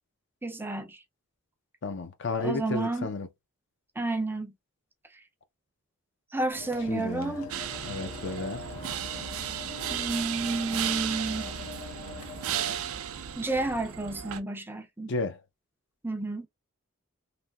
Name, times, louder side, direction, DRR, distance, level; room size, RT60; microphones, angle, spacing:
voice 1, 0.4-1.0 2.4-3.1 4.0-4.5 5.1-5.2 6.3-7.7 9.9-11.5 13.4-15.1 16.0-16.5, right 2 dB, 10° right, 0.4 m, -31 dB
voice 2, 1.8-3.3 6.9-7.3 7.9-8.7 15.1-15.4, left 3 dB, 55° left, 0.5 m, -32 dB
sound 1, 6.5-12.7, left 5 dB, 85° left, 0.8 m, -44 dB
sound 2, 7.5-14.4, right 9 dB, 75° right, 0.4 m, -34 dB
3.2 x 2.6 x 2.2 m
head